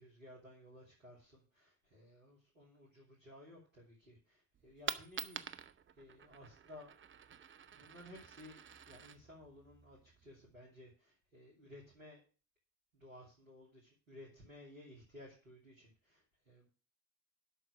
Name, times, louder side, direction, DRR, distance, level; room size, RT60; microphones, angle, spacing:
voice 1, 0.0-5.7 6.0-6.9 7.7-8.6 8.8-12.2 12.9-16.7, left 1 dB, 90° right, -6 dB, 2.8 m, -57 dB
Coin (dropping), 4.5-10.5, right 8 dB, 30° right, 0.8 m, -48 dB
11.5 x 6.3 x 6.1 m, 0.36 s
figure-of-eight pair, 50°, 39 cm